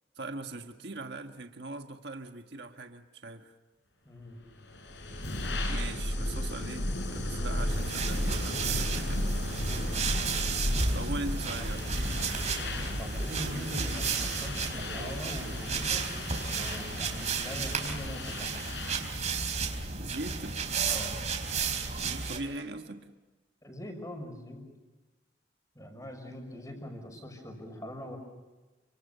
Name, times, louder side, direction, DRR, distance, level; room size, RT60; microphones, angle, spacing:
voice 1, 0.1-3.6 5.7-9.3 10.9-11.9 13.5-13.7 20.0-20.6 22.0-23.1, right 2 dB, 60° right, 5 dB, 1.6 m, -40 dB
voice 2, 4.0-4.4 11.6-12.3 13.0-16.1 16.5-18.7 20.9-21.2 23.6-24.7 25.7-28.2, equal, 20° left, 5 dB, 5.9 m, -42 dB
sound 1, 4.6-19.2, left 1 dB, 70° left, 5.2 m, -34 dB
sound 2, 7.7-22.4, right 5 dB, 40° right, 4.1 m, -33 dB
30.0 x 26.5 x 7.0 m, 1.2 s
head